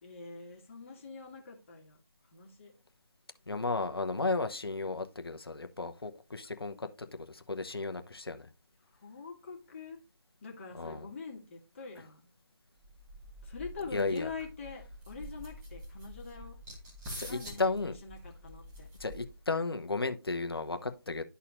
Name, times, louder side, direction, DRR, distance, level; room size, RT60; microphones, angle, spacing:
voice 1, 0.0-2.0 2.3-2.7 9.0-10.0 10.4-12.3 13.4-16.6 17.3-18.9, left 4 dB, 30° left, 1.8 m, -44 dB
voice 2, 3.5-8.5 10.7-11.1 13.9-14.3 17.2-17.9 19.0-21.2, left 3 dB, 70° left, 0.9 m, -34 dB
sound 1, 12.8-19.5, equal, 10° right, 1.7 m, -47 dB
12.5 x 4.2 x 2.5 m
figure-of-eight pair, 155°, 13 cm